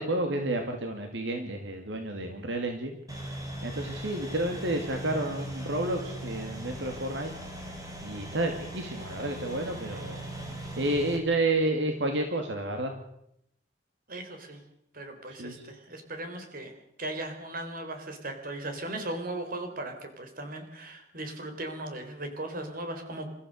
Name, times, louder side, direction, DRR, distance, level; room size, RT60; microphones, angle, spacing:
voice 1, 0.0-3.0 3.6-7.3 8.0-10.3 10.8-12.9 15.4-15.6, right 2 dB, 75° right, 4 dB, 2.4 m, -30 dB
sound 1, 3.1-11.2, right 1 dB, 20° right, 4.2 m, -39 dB
voice 2, 14.1-14.6 14.9-23.3, right 1 dB, 50° right, 6 dB, 3.9 m, -38 dB
29.0 x 14.5 x 6.5 m, 0.75 s
head